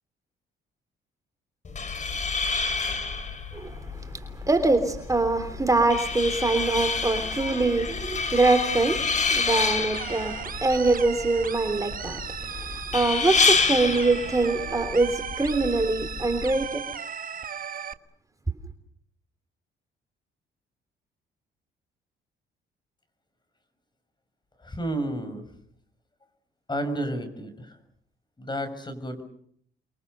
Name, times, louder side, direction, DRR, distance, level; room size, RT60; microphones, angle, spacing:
sound 1, 1.6-16.6, left 4 dB, 35° left, 4.3 m, -28 dB
voice 1, 3.5-16.8, right 3 dB, 15° right, 7 dB, 3.2 m, -24 dB
sound 2, 9.9-17.9, right 7 dB, 45° right, 1.4 m, -36 dB
voice 2, 24.6-25.5 26.7-27.7 28.4-29.2, right 1 dB, 20° left, 10 dB, 6.6 m, -31 dB
29.5 x 23.5 x 6.8 m, 0.66 s
cardioid pair, 90°, 20 cm